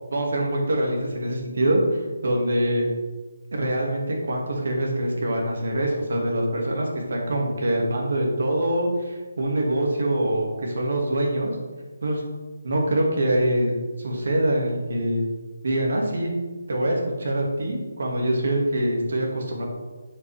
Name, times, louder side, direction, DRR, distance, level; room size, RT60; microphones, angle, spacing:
voice 1, 0.1-2.9 3.5-11.5 12.0-12.2 12.6-15.3 15.6-16.3 16.7-19.6, right 1 dB, 55° right, -1 dB, 2.3 m, -24 dB
8.5 x 7.5 x 3.6 m, 1.3 s
hypercardioid pair, 175°, 0 cm